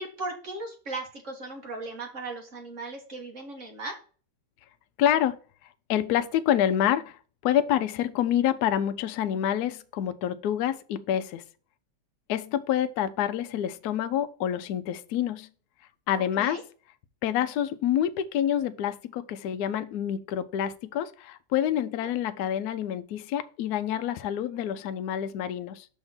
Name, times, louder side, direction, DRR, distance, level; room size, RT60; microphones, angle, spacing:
voice 1, 0.0-4.0 16.4-16.6 21.8-22.1, right 2 dB, 40° right, 1.5 m, -37 dB
voice 2, 5.0-5.4 5.9-11.4 12.3-15.5 16.1-16.6 17.2-25.9, left 10 dB, 85° left, 0.8 m, -27 dB
6.1 x 3.6 x 5.7 m
omnidirectional pair, 2.3 m